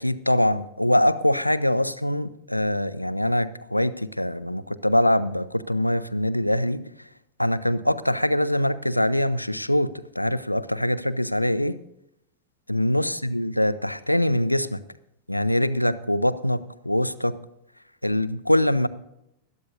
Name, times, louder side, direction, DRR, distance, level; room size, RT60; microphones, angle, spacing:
voice 1, 0.0-6.8 7.4-11.8 12.7-14.8 15.3-17.4 18.0-18.9, left 1 dB, 90° left, 14 dB, 0.6 m, -23 dB
20.5 x 13.0 x 2.7 m, 0.80 s
figure-of-eight pair, 90°, 0 cm